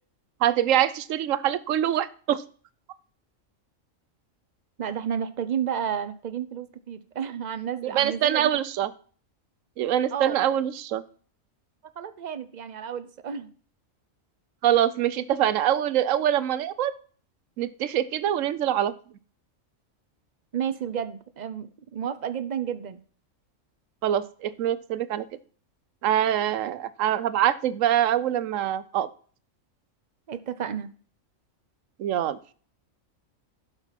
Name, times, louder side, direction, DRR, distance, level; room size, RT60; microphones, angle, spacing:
voice 1, 0.4-2.4 7.8-8.9 9.8-11.0 14.6-16.9 17.6-18.9 24.0-25.2 26.0-29.1 32.0-32.4, right 11 dB, 80° right, 15 dB, 1.0 m, -24 dB
voice 2, 4.8-8.6 10.1-10.4 12.0-13.5 20.5-23.0 30.3-30.9, right 8 dB, 45° right, 12 dB, 0.7 m, -31 dB
11.5 x 5.4 x 5.8 m, 0.43 s
omnidirectional pair, 1.4 m